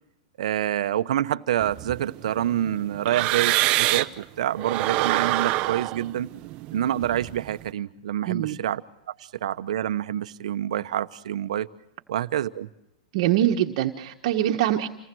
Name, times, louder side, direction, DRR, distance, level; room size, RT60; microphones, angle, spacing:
voice 1, 0.4-6.3 6.7-8.8 9.1-9.2 9.4-11.7 12.1-12.7, right 11 dB, 75° right, 1.0 m, -27 dB
sound 1, 1.6-4.2 4.6-7.6, right 18 dB, 35° right, 0.9 m, -26 dB
voice 2, 8.3-8.6 13.1-14.9, right 12 dB, 55° right, 1.5 m, -23 dB
28.0 x 19.0 x 6.3 m
hypercardioid pair, 140°, 4 cm